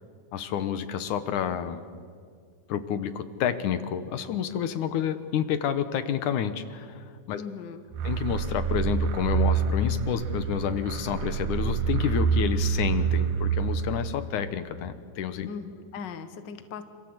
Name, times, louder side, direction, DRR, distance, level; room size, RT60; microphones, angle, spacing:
voice 1, 0.3-2.0 2.7-7.4 8.0-15.5, left 9 dB, 70° left, 11 dB, 2.5 m, -29 dB
voice 2, 7.3-7.8 15.4-16.8, left 6 dB, 50° left, 9 dB, 1.4 m, -39 dB
sound 1, 7.9-14.5, right 6 dB, 80° right, 2.9 m, -27 dB
27.5 x 26.5 x 8.1 m, 2.1 s
omnidirectional pair, 3.7 m